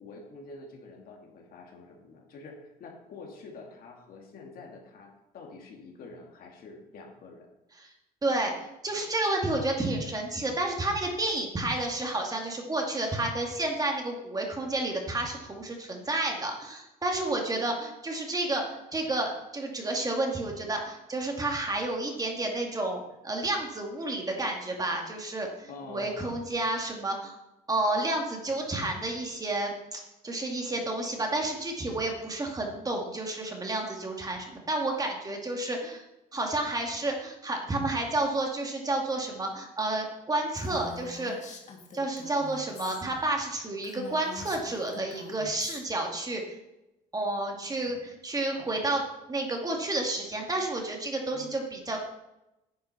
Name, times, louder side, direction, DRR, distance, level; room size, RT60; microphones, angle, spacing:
voice 1, 0.0-7.5 25.7-26.2 51.3-51.6, left 3 dB, 60° left, 1 dB, 2.5 m, -47 dB
voice 2, 8.2-27.4 27.7-36.0 36.3-41.3 41.9-46.6 47.1-49.0 49.3-52.0, right 2 dB, 20° right, 1 dB, 2.2 m, -30 dB
Female speech woman speaking, 40.6-43.0 43.4-43.5 43.8-45.8, left 4 dB, 45° left, 1.8 m, -45 dB
9.8 x 7.3 x 5.8 m, 0.92 s
cardioid pair, 110°, 17 cm